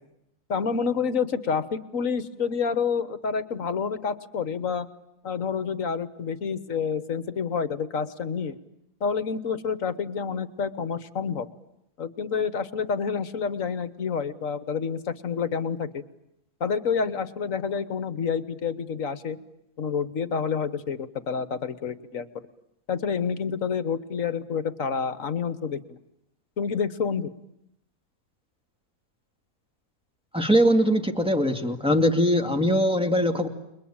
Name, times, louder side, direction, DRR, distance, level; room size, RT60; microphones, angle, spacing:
voice 1, 0.5-4.9 5.2-8.6 9.0-11.5 12.0-16.0 16.6-19.4 19.8-22.3 22.9-26.0 26.6-27.3, left 6 dB, 55° left, 14 dB, 1.6 m, -28 dB
voice 2, 30.3-33.5, equal, 5° right, 5 dB, 2.2 m, -21 dB
29.5 x 22.0 x 8.8 m, 0.83 s
omnidirectional pair, 1.7 m